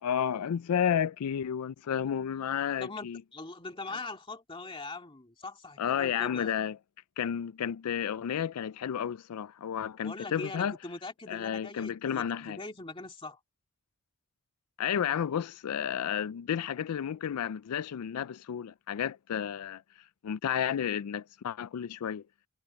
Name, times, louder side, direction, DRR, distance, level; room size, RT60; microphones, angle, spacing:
voice 1, 0.0-3.2 5.8-6.8 7.2-10.8 11.3-12.6 14.8-19.8 20.2-22.2, left 8 dB, 85° left, 0.4 m, -32 dB
voice 2, 2.8-6.5 10.0-13.4, left 3 dB, 25° left, 2.3 m, -42 dB
head